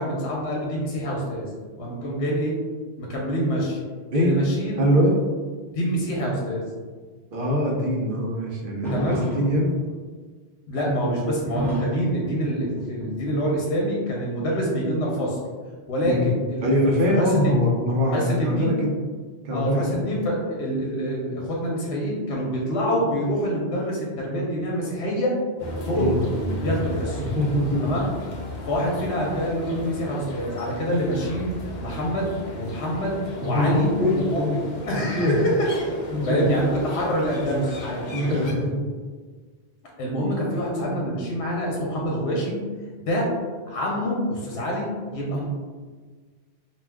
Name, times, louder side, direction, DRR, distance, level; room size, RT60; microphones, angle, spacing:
voice 1, 0.0-1.5 1.8-2.5 3.0-3.8 4.1-4.8 5.7-6.7 8.9-9.2 10.7-15.4 15.9-17.5 18.1-18.8 19.5-25.3 25.8-26.1 26.6-27.2 27.8-28.1 28.6-31.5 31.8-32.3 32.6-33.9 34.1-35.7 36.3-38.1 40.0-42.6 43.0-43.3 43.7-45.4, equal, 80° left, -3 dB, 0.9 m, -26 dB
voice 2, 4.8-5.2 7.3-9.7 16.0-16.3 16.6-19.0 19.4-20.1 25.9-26.2 27.2-28.0 33.4-34.6 35.2-35.5 36.1-36.7 38.1-38.9, equal, 60° right, -1 dB, 0.7 m, -23 dB
sound 1, 8.8-9.8 11.2-13.7 14.7-15.7, equal, ahead, 0.6 m, -31 dB
sound 2, 25.6-38.5, left 1 dB, 55° left, 0.5 m, -34 dB
2.4 x 2.3 x 3.3 m, 1.5 s
omnidirectional pair, 1.1 m